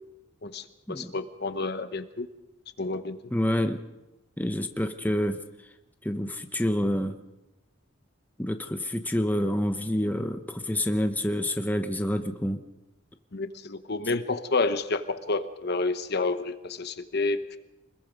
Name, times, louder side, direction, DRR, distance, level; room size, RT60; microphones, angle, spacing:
voice 1, 0.4-2.3 2.8-3.2 13.3-17.6, left 3 dB, 55° left, 10 dB, 1.0 m, -29 dB
voice 2, 3.3-3.8 4.4-5.4 6.0-7.2 8.4-12.6, left 1 dB, 10° left, 7 dB, 0.9 m, -27 dB
25.0 x 21.5 x 5.2 m, 0.99 s
head